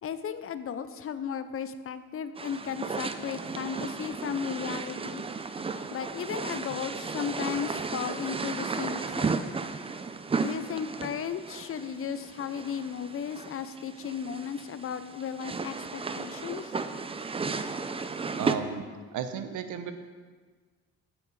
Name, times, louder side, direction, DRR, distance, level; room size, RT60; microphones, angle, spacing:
voice 1, 0.0-5.2 5.9-9.4 10.4-16.7, left 7 dB, 45° left, 11 dB, 0.5 m, -35 dB
sound 1, 2.4-18.6, right 4 dB, 20° right, 0.4 m, -34 dB
voice 2, 18.4-18.8 19.1-19.9, right 8 dB, 75° right, 9 dB, 0.8 m, -33 dB
9.0 x 5.8 x 4.7 m, 1.5 s
cardioid pair, 90°, 30 cm